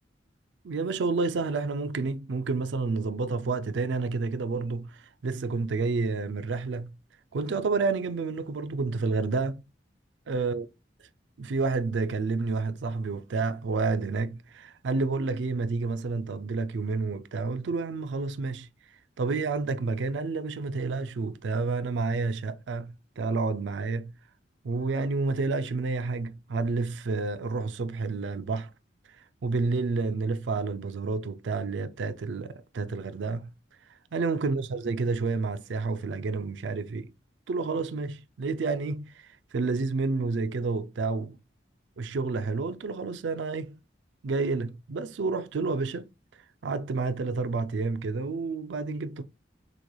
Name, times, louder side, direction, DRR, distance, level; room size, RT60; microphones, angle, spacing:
voice 1, 0.6-7.0 7.3-9.6 10.3-10.7 11.4-18.7 19.2-24.1 24.6-28.7 29.4-33.5 34.1-37.1 37.5-41.4 42.0-43.8 44.2-46.1 46.6-49.2, right 4 dB, 75° right, 0.4 m, -29 dB
6.2 x 3.1 x 2.3 m
head